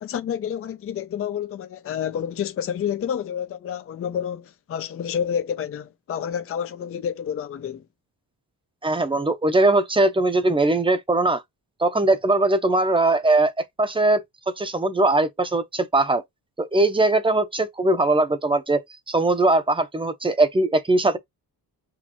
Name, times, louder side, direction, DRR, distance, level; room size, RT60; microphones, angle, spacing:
voice 1, 0.0-7.8, left 8 dB, 35° left, 0.5 m, -29 dB
voice 2, 8.8-11.4 11.8-13.5 13.8-14.2 14.6-16.2 16.6-18.8 19.1-21.2, right 2 dB, 15° right, 0.7 m, -20 dB
6.2 x 2.6 x 2.9 m
wide cardioid pair, 170°, 38 cm